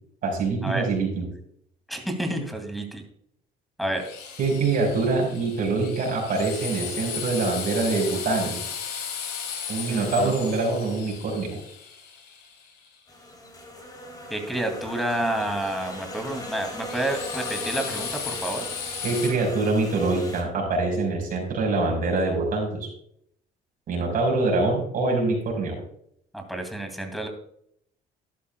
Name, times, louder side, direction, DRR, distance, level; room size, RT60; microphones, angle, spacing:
voice 1, 0.2-1.3 4.4-8.6 9.7-11.6 19.0-22.9 23.9-25.8, right 3 dB, 60° right, 0 dB, 5.0 m, -24 dB
voice 2, 1.9-3.0 3.8-4.0 9.9-10.3 14.3-18.6 26.3-27.3, right 1 dB, ahead, 3 dB, 2.4 m, -29 dB
Drill, 3.9-12.9 16.3-19.3, left 7 dB, 90° left, 3.1 m, -36 dB
sound 1, 13.1-20.4, left 1 dB, 20° left, 3.3 m, -38 dB
13.0 x 11.5 x 2.3 m, 0.68 s
cardioid pair, 110°, 17 cm